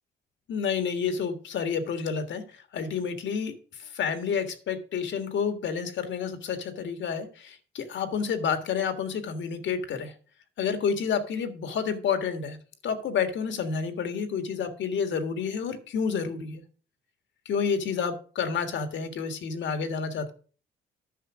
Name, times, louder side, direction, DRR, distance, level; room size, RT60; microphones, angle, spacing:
voice 1, 0.5-2.4 2.7-3.5 3.8-10.1 10.6-12.6 12.8-16.6 17.5-20.3, left 6 dB, 70° left, 8 dB, 1.7 m, -29 dB
10.0 x 5.8 x 6.1 m, 0.41 s
cardioid pair, 90°, 20 cm